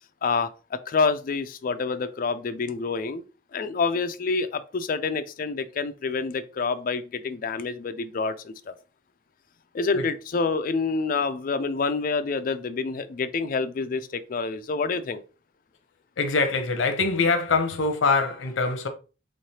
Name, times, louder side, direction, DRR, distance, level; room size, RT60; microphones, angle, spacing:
voice 1, 0.2-3.2 3.5-8.7 9.7-15.2, left 4 dB, 45° left, 0.4 m, -27 dB
voice 2, 16.2-18.9, left 4 dB, 85° left, 0.7 m, -23 dB
3.6 x 3.2 x 2.8 m
head